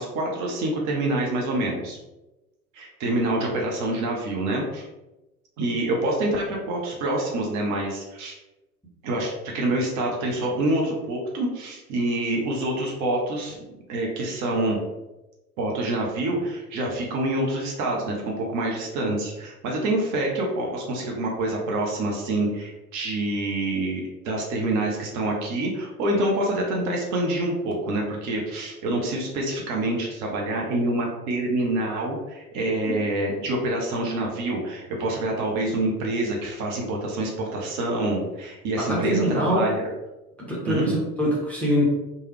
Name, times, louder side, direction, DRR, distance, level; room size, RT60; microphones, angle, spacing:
voice 1, 0.0-2.0 2.7-4.9 5.6-8.4 9.0-13.6 13.9-14.8 15.6-39.8 40.7-40.9, right 1 dB, 40° right, -1 dB, 0.7 m, -26 dB
voice 2, 38.8-39.7 40.4-41.8, equal, 5° left, -6 dB, 0.7 m, -24 dB
3.1 x 2.2 x 3.1 m, 1.0 s
figure-of-eight pair, 75°, 45 cm